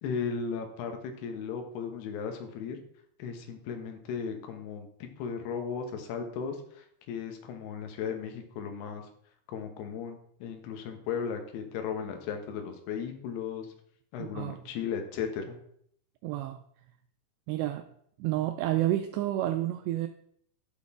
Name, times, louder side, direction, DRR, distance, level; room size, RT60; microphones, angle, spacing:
voice 1, 0.0-2.8 3.2-9.1 9.5-13.7 14.1-15.6, left 6 dB, 70° left, 5 dB, 3.0 m, -36 dB
voice 2, 14.2-14.6 16.2-16.6 17.5-17.9 18.2-20.1, right 14 dB, 85° right, 7 dB, 2.6 m, -30 dB
11.5 x 6.2 x 3.6 m, 0.67 s
omnidirectional pair, 5.2 m